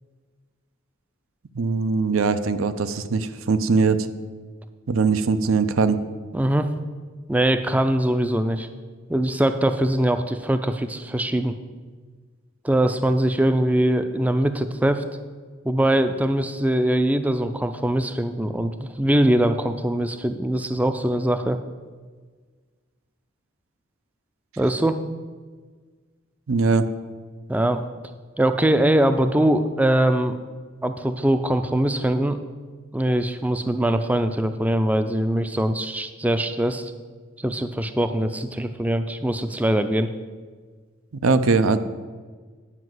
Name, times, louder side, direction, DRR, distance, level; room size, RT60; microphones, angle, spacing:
voice 1, 1.5-4.1 4.9-6.0 26.5-26.9 41.2-41.8, right 4 dB, 85° right, 11 dB, 0.6 m, -21 dB
voice 2, 6.3-6.7 7.3-8.7 9.1-11.5 12.6-15.0 15.6-21.6 24.6-25.0 27.5-27.8 28.4-30.4 30.8-32.4 32.9-36.9 37.4-40.1, right 1 dB, 5° right, 9 dB, 0.3 m, -22 dB
9.8 x 5.2 x 7.8 m, 1.5 s
head